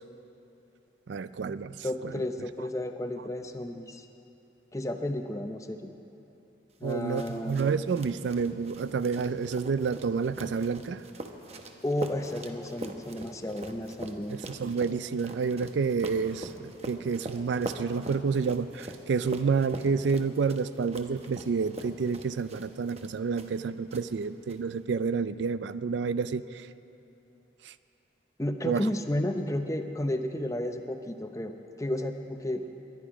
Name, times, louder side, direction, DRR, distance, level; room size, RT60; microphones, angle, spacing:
voice 1, 1.1-1.8 6.8-11.0 14.3-26.4 27.7-27.8 28.6-28.8, right 5 dB, 75° right, 15 dB, 0.4 m, -29 dB
voice 2, 1.8-4.0 4.7-5.9 6.8-7.6 11.8-14.4 28.4-32.6, left 1 dB, 15° left, 6 dB, 0.6 m, -32 dB
sound 1, 6.9-23.6 23.9-24.6, right 1 dB, 35° right, 0.8 m, -43 dB
22.0 x 10.5 x 5.0 m, 2.9 s
head